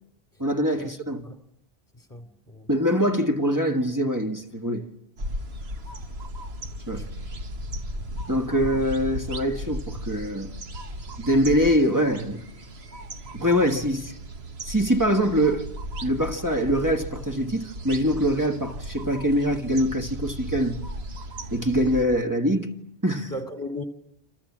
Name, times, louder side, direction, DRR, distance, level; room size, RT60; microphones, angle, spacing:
voice 1, 0.4-1.3 2.7-4.9 6.9-7.1 8.3-10.5 11.2-12.4 13.3-14.1 14.6-15.7 16.0-20.8 21.5-22.7 23.0-23.3, equal, 20° right, 1.6 m, -23 dB
voice 2, 2.1-2.7 7.0-7.1 23.3-23.8, left 1 dB, 20° left, 2.7 m, -36 dB
sound 1, 5.2-22.0, equal, 80° right, 1.7 m, -36 dB
29.0 x 27.0 x 7.3 m
omnidirectional pair, 1.0 m